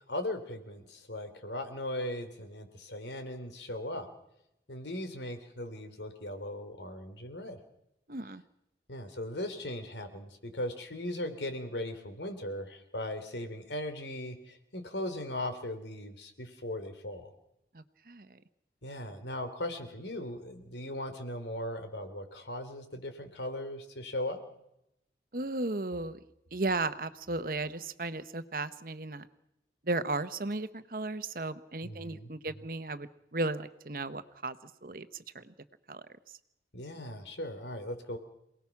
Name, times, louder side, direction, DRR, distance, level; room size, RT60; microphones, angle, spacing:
voice 1, 0.1-4.1 4.7-7.6 8.9-17.3 18.8-24.4 31.8-32.3 36.7-38.2, left 1 dB, 80° left, 8 dB, 3.2 m, -38 dB
voice 2, 8.1-8.4 17.7-18.3 25.3-26.2 26.5-29.3 29.9-33.1 33.3-34.6 34.8-35.1 35.3-35.4 35.9-36.0, right 2 dB, 50° right, 12 dB, 1.1 m, -35 dB
28.0 x 19.0 x 6.0 m, 0.82 s
head